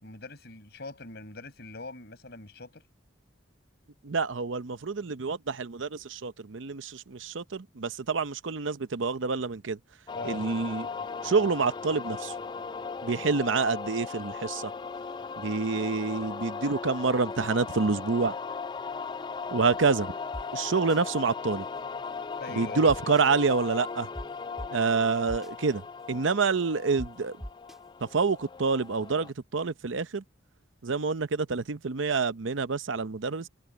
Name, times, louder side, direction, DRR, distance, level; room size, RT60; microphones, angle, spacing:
voice 1, 0.0-2.8 10.1-10.4 22.4-23.0, left 3 dB, 55° left, 5.1 m, -42 dB
voice 2, 4.0-9.8 10.2-10.9 11.2-12.3 13.0-14.7 15.4-18.4 19.5-20.1 20.5-21.7 22.5-24.1 24.7-27.4 28.0-30.2 30.8-33.5, right 4 dB, 80° right, 0.7 m, -27 dB
sound 1, 10.1-29.3, left 5 dB, 25° left, 0.4 m, -38 dB
sound 2, 20.3-20.4 20.9-21.0 22.9-23.2 24.2-24.3 24.6-24.7 25.3-25.5 27.0-27.1 27.4-27.8, equal, ahead, 3.6 m, -38 dB
head